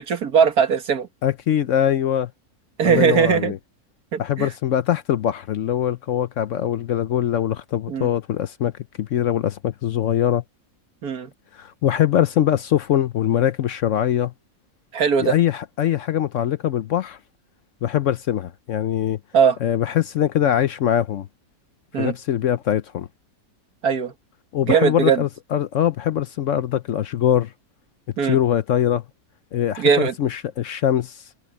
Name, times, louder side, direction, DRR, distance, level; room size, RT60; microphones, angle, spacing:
voice 1, 0.0-1.1 2.8-3.5 4.1-4.5 7.9-8.1 11.0-11.3 14.9-15.4 19.3-19.6 21.9-22.1 23.8-24.1 24.6-25.2 28.2-28.4 29.8-30.1, right 7 dB, 75° right, 2.1 m, -19 dB
voice 2, 1.2-2.3 2.8-3.6 4.2-8.7 9.0-10.4 11.5-14.3 15.2-17.2 17.8-19.2 19.6-21.3 22.0-23.1 24.5-27.5 28.2-29.0 29.5-31.2, left 10 dB, 65° left, 0.9 m, -22 dB
omnidirectional pair, 1.6 m